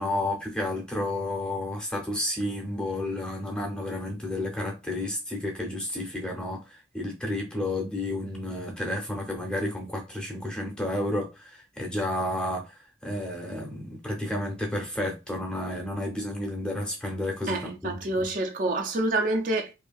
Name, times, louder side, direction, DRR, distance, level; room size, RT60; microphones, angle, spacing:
voice 1, 0.0-18.3, left 1 dB, 5° left, 0.6 m, -31 dB
voice 2, 17.5-19.7, right 2 dB, 45° right, 0.4 m, -27 dB
2.7 x 2.5 x 2.3 m
head